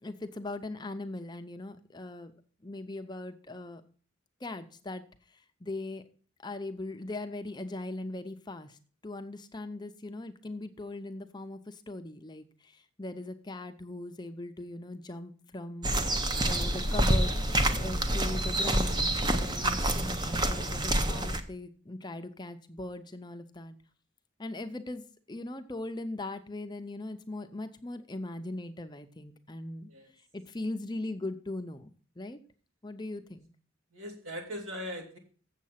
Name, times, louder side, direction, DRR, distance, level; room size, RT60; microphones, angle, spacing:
voice 1, 0.0-2.3 2.6-3.8 4.4-5.0 5.3-6.0 6.4-16.0 16.4-17.4 17.7-23.8 24.4-29.9 30.3-31.9 32.2-32.4 32.8-33.5, left 2 dB, 20° left, 7 dB, 0.6 m, -40 dB
sound 1, 15.8-21.4, right 1 dB, 20° right, 0.7 m, -27 dB
voice 2, 33.9-35.2, equal, 80° right, 1 dB, 2.9 m, -40 dB
7.4 x 7.4 x 5.7 m, 0.42 s
head